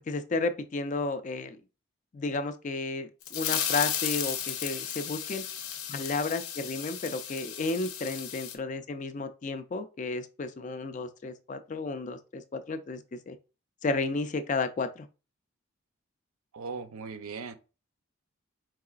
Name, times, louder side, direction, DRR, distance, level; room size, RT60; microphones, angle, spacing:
voice 1, 0.1-1.6 2.1-5.5 5.9-13.4 13.8-15.1, left 3 dB, 35° left, 0.3 m, -32 dB
sound 1, 3.2-8.5, left 9 dB, 90° left, 0.6 m, -34 dB
voice 2, 16.5-17.6, right 5 dB, 75° right, 0.5 m, -38 dB
4.6 x 3.7 x 2.4 m
head